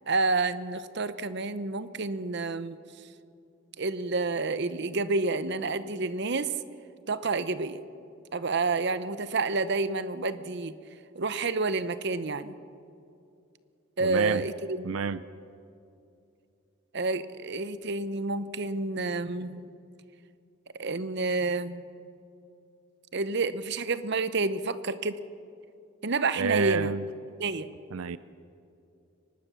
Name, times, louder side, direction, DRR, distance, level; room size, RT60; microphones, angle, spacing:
voice 1, 0.1-2.8 3.8-6.5 7.1-7.8 8.3-10.7 11.2-12.5 14.0-15.0 16.9-19.7 20.7-21.8 23.1-25.2 26.0-26.9 27.4-27.7, right 3 dB, 55° right, 13 dB, 0.8 m, -29 dB
voice 2, 14.0-14.4 14.8-15.2 26.4-27.0 27.9-28.2, right 6 dB, 90° right, 15 dB, 0.5 m, -29 dB
24.0 x 19.0 x 7.0 m, 2.6 s
head